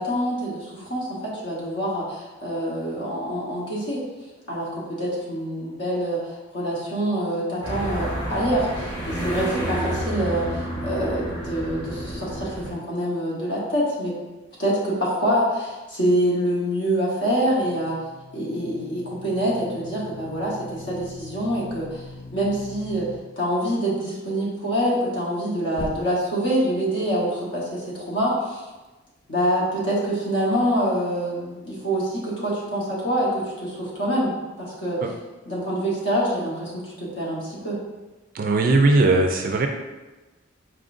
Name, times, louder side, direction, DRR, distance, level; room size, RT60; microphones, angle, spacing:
voice 1, 0.0-4.0 4.5-14.1 14.6-18.0 18.3-22.0 22.3-23.1 23.4-28.6 29.3-35.0 35.4-37.8, equal, 60° left, -6 dB, 1.1 m, -25 dB
sound 1, 7.6-12.7, right 1 dB, 25° left, 1.5 m, -30 dB
sound 2, 17.4-23.2 25.7-26.5, left 2 dB, 45° left, 0.4 m, -41 dB
voice 2, 38.3-39.7, right 2 dB, 45° right, 4 dB, 0.3 m, -18 dB
4.5 x 3.7 x 2.5 m, 1.2 s
head